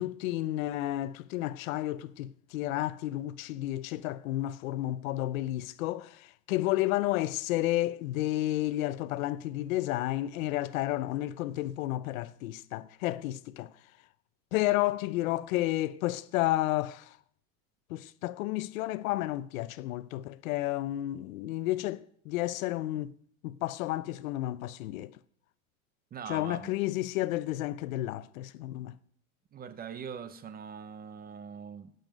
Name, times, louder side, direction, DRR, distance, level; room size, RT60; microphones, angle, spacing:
voice 1, 0.0-13.7 14.5-17.1 17.9-23.1 23.4-25.1 26.3-29.0, left 16 dB, 80° left, 0.7 m, -31 dB
voice 2, 26.1-26.8 29.5-31.9, right 7 dB, 20° right, 0.7 m, -42 dB
16.5 x 7.9 x 5.2 m
supercardioid pair, 130°, 40 cm